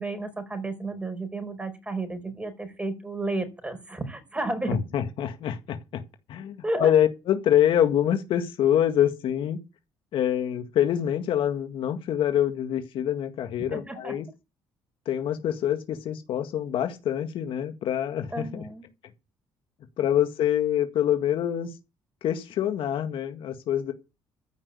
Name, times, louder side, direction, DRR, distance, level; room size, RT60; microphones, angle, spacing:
voice 1, 0.0-4.8 6.6-6.9 13.6-14.2 18.3-18.8, right 2 dB, 15° right, 5.1 m, -32 dB
voice 2, 4.7-6.0 6.3-9.6 10.1-14.3 15.1-18.7 20.0-21.7 22.2-23.9, left 10 dB, 70° left, 1.9 m, -25 dB
14.5 x 6.0 x 8.3 m
cardioid pair, 85°, 9 cm